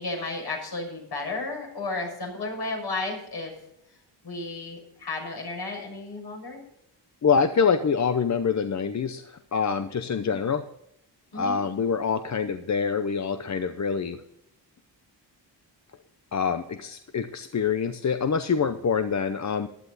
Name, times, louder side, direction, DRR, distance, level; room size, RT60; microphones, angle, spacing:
voice 1, 0.0-3.5 4.2-6.6 10.2-10.4 11.3-11.6, left 3 dB, 60° left, 0 dB, 6.7 m, -33 dB
voice 2, 7.2-10.6 11.3-14.2 16.3-19.7, left 6 dB, 40° left, 9 dB, 0.8 m, -25 dB
15.0 x 11.5 x 4.1 m, 0.78 s
wide cardioid pair, 105°, 43 cm